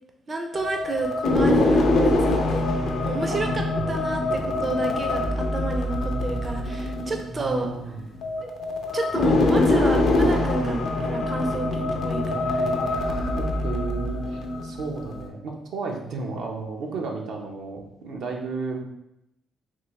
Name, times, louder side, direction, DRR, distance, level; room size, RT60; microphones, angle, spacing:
voice 1, 0.3-7.7 8.4-8.5 8.9-12.8, right 3 dB, 35° right, 3 dB, 0.4 m, -30 dB
sound 1, 0.5-15.3, left 2 dB, 70° left, 0.5 m, -24 dB
voice 2, 3.3-3.9 7.4-8.1 13.1-18.8, right 3 dB, 80° right, 1 dB, 0.6 m, -33 dB
3.7 x 2.7 x 3.0 m, 0.84 s
cardioid pair, 90°, 0 cm